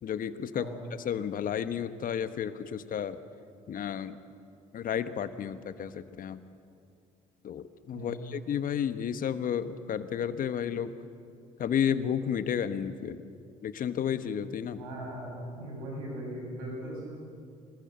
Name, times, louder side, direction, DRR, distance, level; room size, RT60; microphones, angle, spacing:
voice 1, 0.0-0.7 1.0-3.2 3.7-4.2 4.7-6.4 7.4-10.9 11.6-13.2 13.6-14.8, left 8 dB, 55° left, 12 dB, 1.3 m, -32 dB
voice 2, 14.7-17.0, right 1 dB, 85° right, -1 dB, 7.0 m, -39 dB
24.5 x 20.5 x 7.9 m, 2.3 s
hypercardioid pair, 55°, 17 cm